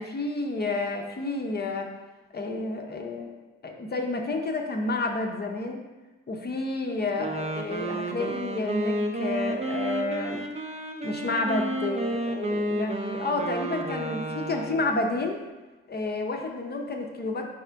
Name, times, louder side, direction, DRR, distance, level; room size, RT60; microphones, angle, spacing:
voice 1, 0.0-1.9 2.3-3.3 3.6-5.8 6.3-10.5 11.0-15.4 15.9-17.5, left 2 dB, 30° left, 2 dB, 0.7 m, -30 dB
Wind instrument woodwind instrument, 7.1-15.0, right 1 dB, 20° right, 0.5 m, -31 dB
4.8 x 2.4 x 4.5 m, 1.2 s
supercardioid pair, 65°, 31 cm